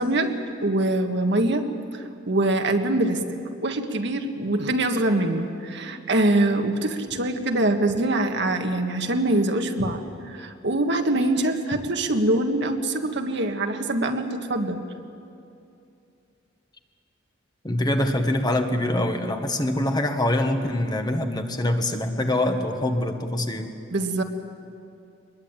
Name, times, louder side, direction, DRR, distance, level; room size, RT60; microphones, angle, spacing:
voice 1, 0.0-3.2 3.6-14.8 23.9-24.2, right 1 dB, 65° right, 5 dB, 1.7 m, -24 dB
voice 2, 17.6-23.7, left 1 dB, 20° left, 5 dB, 1.5 m, -24 dB
24.0 x 21.0 x 9.0 m, 2.6 s
head